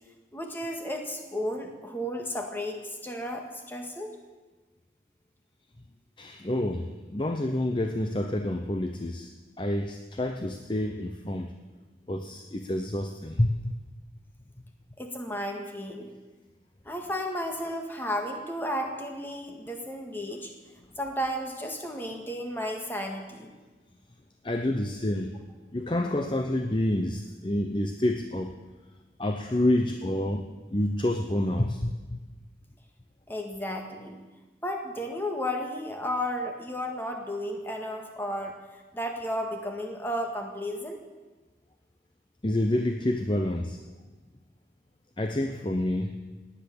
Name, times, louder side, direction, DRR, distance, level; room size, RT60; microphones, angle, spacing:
voice 1, 0.3-4.2 15.0-16.1 16.8-20.5 21.0-23.5 33.3-34.2 34.6-41.0, equal, 10° left, 2 dB, 1.7 m, -33 dB
voice 2, 6.2-9.3 9.6-11.5 12.1-13.7 24.4-25.4 25.7-28.6 29.2-32.2 42.4-43.8 45.2-46.1, left 1 dB, 25° left, 5 dB, 0.7 m, -28 dB
18.0 x 10.0 x 7.1 m, 1.3 s
head